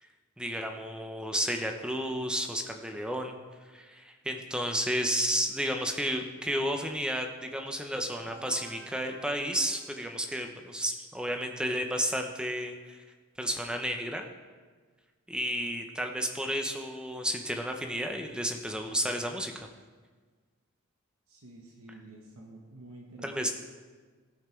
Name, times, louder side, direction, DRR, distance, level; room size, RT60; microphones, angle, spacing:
voice 1, 0.4-3.3 3.7-13.0 13.4-14.3 15.3-19.7 23.2-23.5, equal, 5° right, 4 dB, 0.8 m, -32 dB
sound 1, 8.1-10.7, right 2 dB, 65° right, 1.7 m, -51 dB
voice 2, 21.3-23.5, right 1 dB, 80° right, 0 dB, 1.1 m, -49 dB
17.0 x 5.8 x 4.5 m, 1.5 s
head